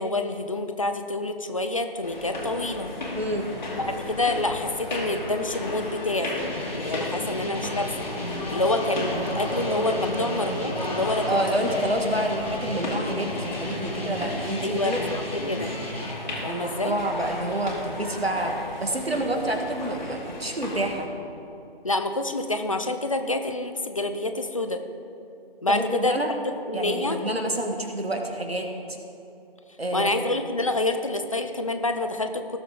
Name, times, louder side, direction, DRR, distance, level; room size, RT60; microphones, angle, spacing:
voice 1, 0.0-2.9 3.9-6.3 6.7-8.1 8.5-11.3 11.6-11.8 14.6-15.7 16.4-17.0 21.8-24.8 25.6-26.2 26.7-27.2 29.9-32.6, left 2 dB, 35° left, 7 dB, 0.6 m, -27 dB
sound 1, 2.0-21.0, left 2 dB, 50° left, 2.7 m, -34 dB
voice 2, 3.1-3.5 11.2-15.0 16.5-18.5 18.8-21.1 25.7-26.3 26.7-29.0 29.8-30.3, right 1 dB, 85° right, 3 dB, 1.8 m, -28 dB
sound 2, 6.4-16.1, left 1 dB, 85° left, 2.1 m, -35 dB
sound 3, 8.5-14.4, right 1 dB, 5° right, 1.1 m, -36 dB
18.0 x 7.3 x 3.8 m, 2.9 s
figure-of-eight pair, 155°, 30 cm